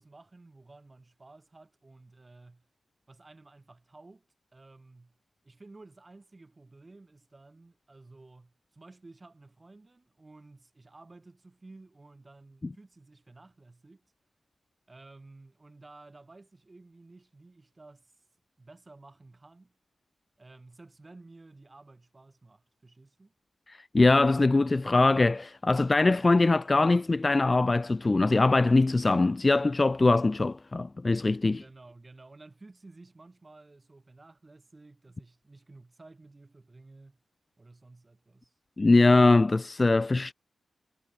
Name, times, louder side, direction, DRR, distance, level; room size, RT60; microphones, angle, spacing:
voice 1, 0.0-2.6 3.1-4.3 4.5-5.1 5.4-14.1 14.9-18.1 18.6-19.7 20.4-23.3 31.5-37.2 37.6-38.5, right 2 dB, 25° right, 5.5 m, -53 dB
voice 2, 23.7-31.6 38.8-40.3, left 3 dB, 25° left, 0.4 m, -22 dB
wide cardioid pair, 120°, 0 cm